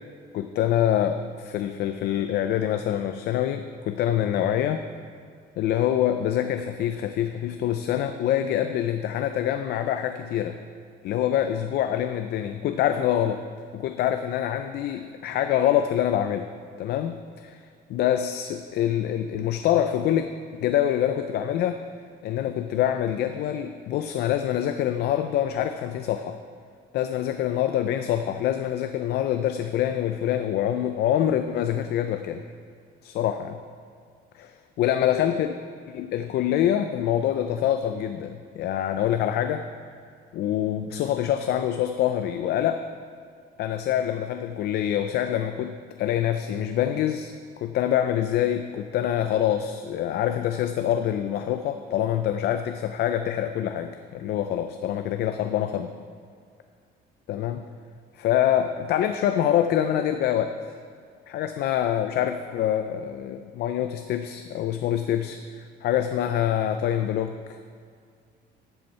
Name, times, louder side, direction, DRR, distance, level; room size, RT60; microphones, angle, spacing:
voice 1, 0.3-4.8 5.6-10.6 11.0-13.4 13.7-16.5 16.8-17.6 17.9-20.3 20.6-21.8 22.2-26.4 26.9-32.4 33.0-33.6 34.8-35.6 35.9-39.6 40.3-42.8 43.6-55.9 57.3-57.7 58.2-60.5 61.3-67.6, left 10 dB, 55° left, 8 dB, 0.5 m, -25 dB
12.0 x 8.0 x 4.3 m, 2.2 s
cardioid pair, 155°, 20 cm